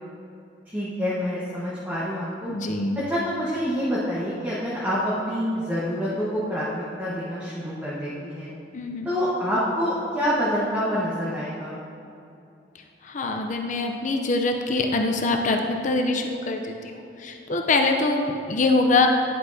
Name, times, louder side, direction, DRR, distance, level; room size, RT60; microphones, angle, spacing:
voice 1, 0.7-2.5 3.1-8.5 9.0-11.8, equal, 10° right, -9 dB, 1.2 m, -27 dB
voice 2, 2.5-3.0 8.7-9.1 13.0-19.1, left 3 dB, 45° left, 3 dB, 0.6 m, -24 dB
10.5 x 8.0 x 2.7 m, 2.6 s
head